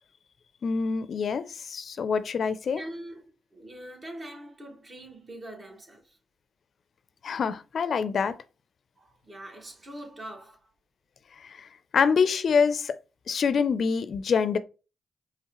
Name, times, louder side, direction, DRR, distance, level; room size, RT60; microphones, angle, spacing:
voice 1, 0.6-2.8 7.2-8.4 11.4-13.0 13.3-14.6, left 6 dB, 60° left, 0.4 m, -26 dB
voice 2, 2.8-3.2 3.5-6.2 9.0-10.6, right 1 dB, 40° right, 1.7 m, -43 dB
4.6 x 3.2 x 2.9 m
hypercardioid pair, 40°, 0 cm